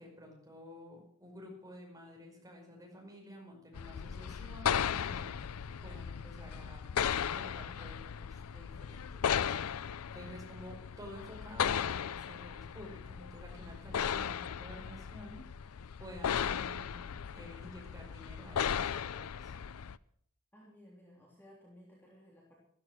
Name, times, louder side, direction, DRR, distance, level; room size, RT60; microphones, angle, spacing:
voice 1, 0.0-5.5 5.8-15.4 16.0-19.6, equal, 15° right, 0 dB, 5.1 m, -51 dB
sound 1, 3.7-20.0, left 8 dB, 80° left, 0.5 m, -36 dB
voice 2, 20.5-22.6, equal, 10° left, -4 dB, 3.2 m, -58 dB
13.5 x 13.5 x 6.3 m, 0.64 s
head